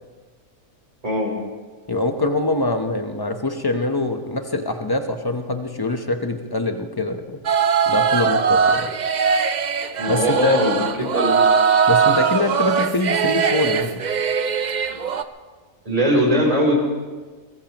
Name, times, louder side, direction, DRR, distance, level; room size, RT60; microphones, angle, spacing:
voice 1, 1.0-1.4 10.0-11.6 15.9-16.7, equal, 25° right, -1 dB, 4.0 m, -20 dB
voice 2, 1.9-7.4 7.9-8.9 10.1-10.6 11.9-14.0, left 2 dB, 20° left, 5 dB, 0.9 m, -24 dB
sound 1, 7.4-15.2, right 6 dB, 50° right, 0.5 m, -20 dB
22.5 x 20.5 x 3.0 m, 1.4 s
omnidirectional pair, 1.5 m